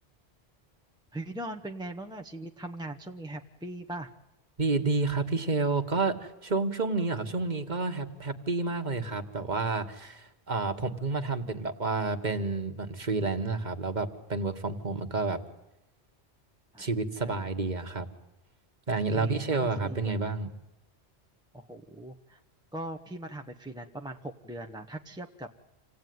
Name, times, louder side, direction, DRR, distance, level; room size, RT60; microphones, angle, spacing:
voice 1, 1.1-4.1 16.7-16.9 17.1-17.4 19.1-20.4 21.5-22.4 22.7-25.5, right 1 dB, 5° right, 3 dB, 0.8 m, -40 dB
voice 2, 4.6-15.4 16.8-18.1 18.9-20.5, right 3 dB, 45° right, 6 dB, 1.6 m, -30 dB
27.0 x 17.5 x 9.4 m, 0.95 s
omnidirectional pair, 1.1 m